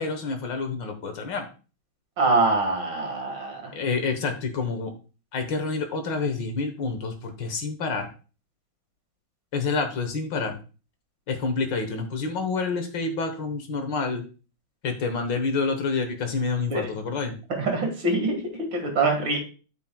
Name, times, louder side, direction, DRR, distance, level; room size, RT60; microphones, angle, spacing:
voice 1, 0.0-1.4 3.7-4.9 5.3-8.1 9.5-10.6 11.3-14.2 14.8-17.4, left 4 dB, 65° left, 6 dB, 1.8 m, -28 dB
voice 2, 2.2-3.7 16.7-16.9 17.6-19.4, right 3 dB, 65° right, 2 dB, 2.6 m, -24 dB
12.5 x 6.0 x 2.3 m, 0.35 s
omnidirectional pair, 2.2 m